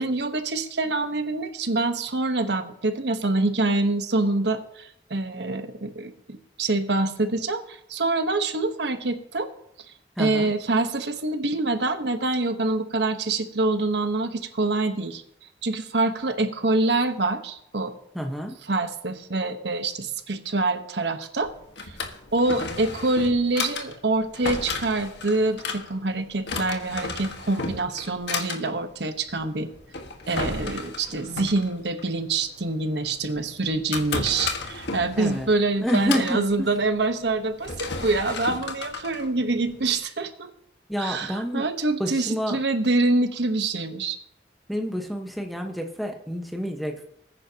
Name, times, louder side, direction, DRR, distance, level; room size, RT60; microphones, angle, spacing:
voice 1, 0.0-9.5 10.2-15.2 15.6-17.9 18.7-21.5 21.9-22.0 22.3-29.7 30.3-40.5 41.0-44.2, right 2 dB, 85° right, 8 dB, 1.2 m, -25 dB
voice 2, 10.2-10.5 18.1-18.5 35.2-35.5 35.8-36.7 40.9-41.6 42.0-42.6 44.7-47.0, equal, ahead, 2 dB, 1.2 m, -28 dB
Drawer open or close, 21.4-40.0, left 4 dB, 85° left, 1.5 m, -34 dB
20.0 x 9.8 x 2.9 m, 0.73 s
head